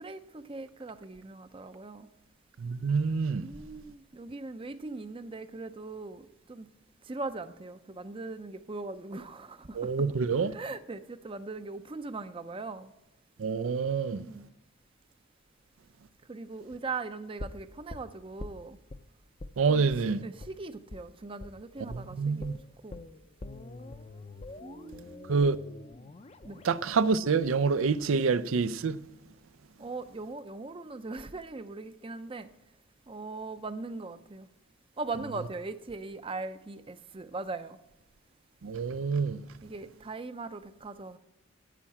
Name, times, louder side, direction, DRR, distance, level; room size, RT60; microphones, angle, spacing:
voice 1, 0.0-2.1 3.4-6.7 7.0-10.1 10.4-12.9 14.1-14.5 16.3-18.8 19.7-19.9 20.2-22.5 22.8-23.0 24.6-25.6 26.4-26.6 29.8-32.5 33.1-34.5 35.0-37.8 39.6-41.2, right 3 dB, 25° right, 0.5 m, -40 dB
voice 2, 2.6-3.5 9.7-10.5 13.4-14.2 19.6-20.2 21.8-22.5 25.3-25.6 26.6-29.0 38.6-39.4, right 5 dB, 80° right, 0.5 m, -27 dB
sound 1, 17.4-19.0 19.4-19.6 19.9-20.0 20.4-20.5 20.9-21.0 21.4-21.6 21.9-22.0 22.4-28.4 28.7-28.8, left 2 dB, 30° left, 0.5 m, -45 dB
10.0 x 8.8 x 7.2 m
head